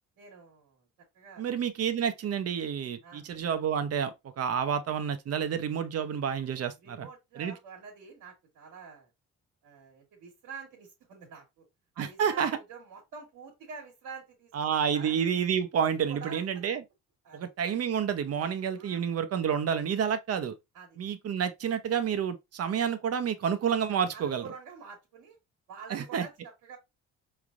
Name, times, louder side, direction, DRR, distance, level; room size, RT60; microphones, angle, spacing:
voice 1, 0.2-0.9 1.1-1.4 3.0-3.2 6.8-9.1 9.6-11.7 11.9-15.2 16.1-16.5 17.2-17.4 18.7-19.2 20.7-21.0 24.1-25.4 25.7-26.8, right 5 dB, 85° right, 1.6 m, -47 dB
voice 2, 1.4-7.1 7.4-7.5 12.0-12.6 14.5-16.8 17.3-20.5 21.0-24.4 25.9-26.3, right 7 dB, 55° right, 0.8 m, -29 dB
4.8 x 3.3 x 2.5 m
cardioid pair, 90°, 30 cm